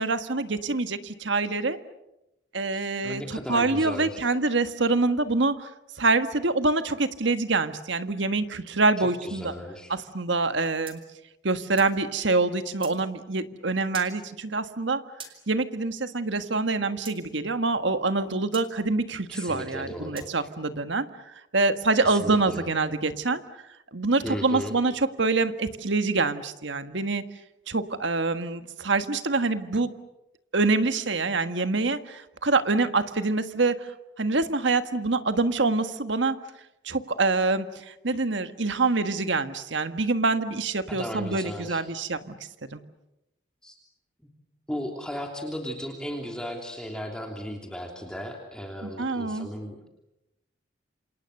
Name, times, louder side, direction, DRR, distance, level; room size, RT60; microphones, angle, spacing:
voice 1, 0.0-1.8 2.5-5.7 6.0-9.5 9.9-11.0 11.4-15.0 15.5-21.1 21.5-23.4 23.9-24.9 25.2-27.2 27.7-29.9 30.5-33.7 34.2-36.4 36.8-42.4 42.7-42.8 48.8-49.5, right 3 dB, 75° right, 10 dB, 1.6 m, -25 dB
voice 2, 2.7-4.2 9.0-9.9 19.3-20.3 22.0-22.7 24.2-24.7 40.9-41.8 43.6-43.7 44.7-49.9, equal, 5° left, 1 dB, 3.1 m, -36 dB
sound 1, 10.9-12.0 12.8-13.0 13.9-14.2 15.2-15.4 17.0-17.2 18.5-18.7 20.2-20.4, right 6 dB, 30° right, 3.3 m, -42 dB
27.5 x 27.5 x 6.7 m, 0.90 s
head